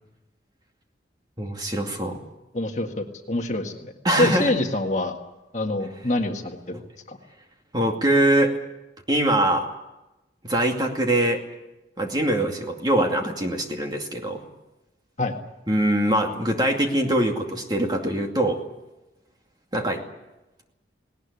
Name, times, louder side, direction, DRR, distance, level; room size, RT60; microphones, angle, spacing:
voice 1, 1.4-2.2 4.0-4.5 6.7-6.9 7.7-8.5 9.1-9.7 10.4-11.4 12.0-14.4 15.7-18.6 19.7-20.0, right 1 dB, 20° right, 2 dB, 2.4 m, -23 dB
voice 2, 2.5-5.2 5.5-6.8 7.1-7.2 15.2-15.3, left 2 dB, 40° left, 3 dB, 1.8 m, -26 dB
19.0 x 19.0 x 9.9 m, 0.99 s
head